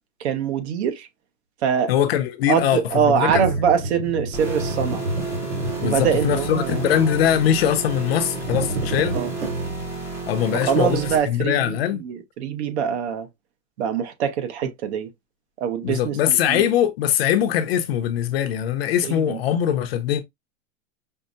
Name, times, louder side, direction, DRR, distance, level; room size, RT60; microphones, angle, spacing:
voice 1, 0.2-1.1 1.6-1.9 2.5-5.1 5.8-6.8 9.1-9.3 10.6-13.3 13.8-15.1 15.6-16.2 16.5-16.7 19.0-19.4, right 7 dB, 55° right, 0.9 m, -23 dB
voice 2, 1.9-3.5 5.8-9.2 10.3-11.0 11.3-12.0 15.8-20.2, left 10 dB, 50° left, 0.6 m, -22 dB
sound 1, 3.3-10.0, right 2 dB, 75° right, 2.8 m, -30 dB
sound 2, 4.3-11.2, right 4 dB, 5° right, 0.6 m, -32 dB
5.5 x 2.1 x 2.5 m
supercardioid pair, 160°, 40 cm